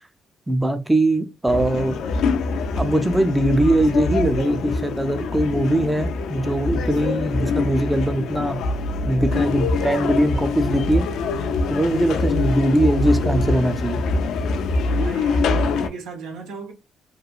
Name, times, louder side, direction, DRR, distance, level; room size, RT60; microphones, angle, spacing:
voice 1, 0.5-2.0 2.8-8.6 9.0-11.1 11.7-14.0, right 1 dB, 10° right, 0.4 m, -21 dB
sound 1, 1.5-15.9, left 3 dB, 80° left, 0.3 m, -24 dB
voice 2, 14.8-16.7, right 4 dB, 85° right, 0.7 m, -35 dB
3.0 x 2.4 x 2.3 m
cardioid pair, 85°, 0 cm